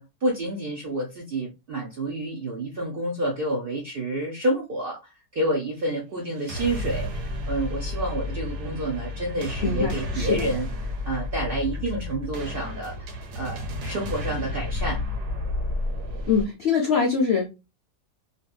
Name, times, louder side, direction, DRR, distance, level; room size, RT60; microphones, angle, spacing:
voice 1, 0.0-10.7 11.1-15.0, right 1 dB, 60° right, 0.6 m, -29 dB
sound 1, 6.3-16.5, left 2 dB, 80° right, 1.3 m, -31 dB
voice 2, 9.6-10.5 16.3-17.5, left 5 dB, 65° left, 0.6 m, -23 dB
2.7 x 2.5 x 2.2 m
omnidirectional pair, 1.7 m